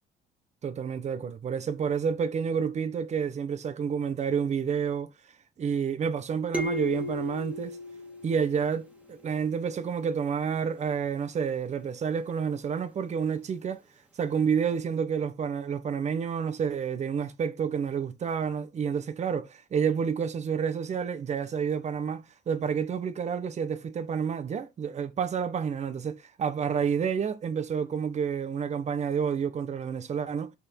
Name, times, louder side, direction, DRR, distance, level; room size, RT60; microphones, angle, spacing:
voice 1, 0.6-5.1 5.6-7.8 8.2-13.8 14.2-30.5, right 7 dB, 40° right, 1.3 m, -29 dB
sound 1, 6.5-9.1, left 1 dB, 5° right, 2.3 m, -35 dB
6.2 x 5.8 x 4.6 m
cardioid pair, 110°, 17 cm